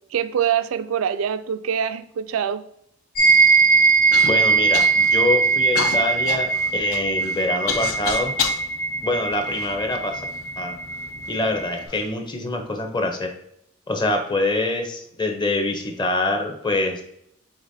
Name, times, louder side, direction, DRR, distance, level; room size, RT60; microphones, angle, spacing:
voice 1, 0.1-2.6, right 8 dB, 75° right, 0.3 m, -24 dB
sound 1, 3.2-11.8, right 4 dB, 45° left, 1.0 m, -20 dB
Human voice / Cough, 4.1-4.3 4.7-5.2 5.8-8.6 9.3-10.2 10.9-11.0 11.7-12.1, left 6 dB, 75° left, 0.6 m, -29 dB
voice 2, 4.2-8.3 9.0-10.3 10.6-10.8 11.3-13.3 13.9-17.0, left 2 dB, 20° left, 0.6 m, -25 dB
5.0 x 3.7 x 2.6 m
head